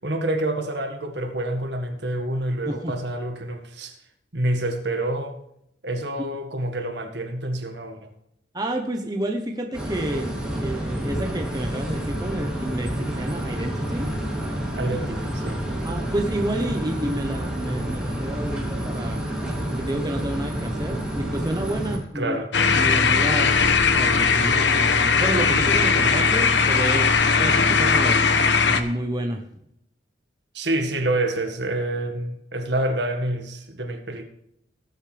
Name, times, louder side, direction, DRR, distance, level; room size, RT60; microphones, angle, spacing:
voice 1, 0.0-4.0 4.3-5.4 5.8-8.1 14.7-15.6 22.1-22.5 30.5-34.2, right 1 dB, 60° right, 5 dB, 1.8 m, -27 dB
voice 2, 8.5-10.3 10.6-14.1 15.8-19.2 19.7-22.4 22.7-23.5 24.0-28.2 28.6-29.4, right 1 dB, 20° right, 2 dB, 1.0 m, -30 dB
sound 1, 9.7-22.0, right 1 dB, 5° right, 2.9 m, -29 dB
sound 2, 22.5-28.8, left 5 dB, 70° left, 1.1 m, -19 dB
19.5 x 8.3 x 3.5 m, 0.77 s
head